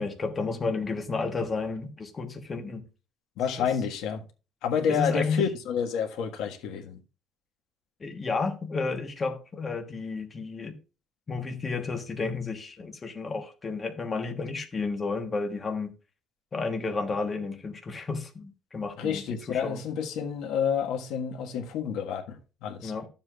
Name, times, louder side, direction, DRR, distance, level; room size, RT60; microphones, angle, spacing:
voice 1, 0.0-2.8 3.6-3.7 4.9-5.4 8.0-10.7 11.3-15.9 16.5-19.2 19.5-19.8 22.8-23.1, left 4 dB, 20° left, 1.1 m, -31 dB
voice 2, 3.4-4.2 4.6-7.0 19.0-22.9, left 7 dB, 80° left, 1.5 m, -29 dB
12.0 x 7.4 x 2.4 m
cardioid pair, 175°, 0 cm